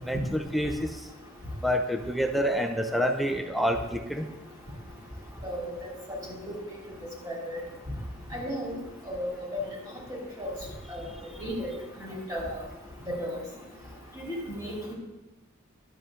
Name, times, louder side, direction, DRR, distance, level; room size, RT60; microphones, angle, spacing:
voice 1, 0.1-0.7 1.6-4.2, equal, ahead, 5 dB, 0.5 m, -27 dB
voice 2, 5.4-5.9 7.2-7.6 8.3-8.8 9.1-9.6 10.1-10.5 10.9-11.0 11.4-11.7 12.0-12.6 13.2-13.3 14.2-14.9, equal, 20° right, -4 dB, 3.1 m, -34 dB
11.0 x 8.1 x 3.7 m, 1.1 s
head